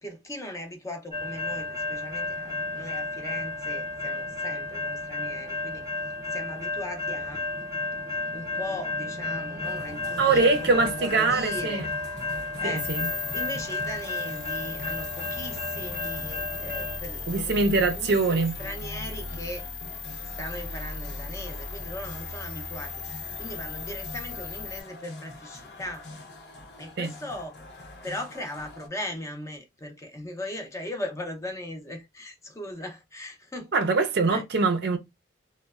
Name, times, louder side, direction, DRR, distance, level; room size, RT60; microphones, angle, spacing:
voice 1, 0.0-5.8 6.3-7.4 8.3-11.9 12.6-12.9 13.3-19.7 20.2-22.9 23.4-26.1 26.8-33.9 34.3-34.4, left 1 dB, 15° left, 0.5 m, -38 dB
sound 1, 1.1-17.0, left 3 dB, 15° right, 0.7 m, -33 dB
sound 2, 9.6-28.9, left 2 dB, 55° left, 0.7 m, -44 dB
voice 2, 10.2-11.9 12.6-13.1 17.3-18.6 27.0-27.1 33.7-35.0, right 3 dB, 55° right, 0.5 m, -23 dB
sound 3, 12.8-24.8, left 4 dB, 85° left, 1.0 m, -37 dB
3.0 x 2.1 x 2.3 m
head